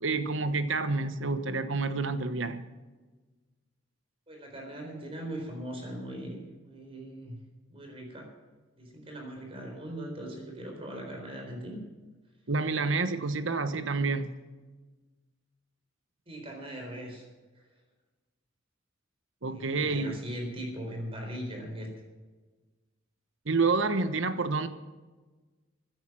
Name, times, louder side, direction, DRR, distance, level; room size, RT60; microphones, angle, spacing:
voice 1, 0.0-2.6 12.5-14.3 19.4-20.2 23.5-24.7, right 3 dB, 75° right, 11 dB, 1.1 m, -28 dB
voice 2, 4.3-7.4 7.7-8.2 8.8-11.8 16.3-17.2 17.6-17.7 19.5-21.9, right 1 dB, 30° right, 1 dB, 4.1 m, -40 dB
16.0 x 10.5 x 6.2 m, 1.3 s
head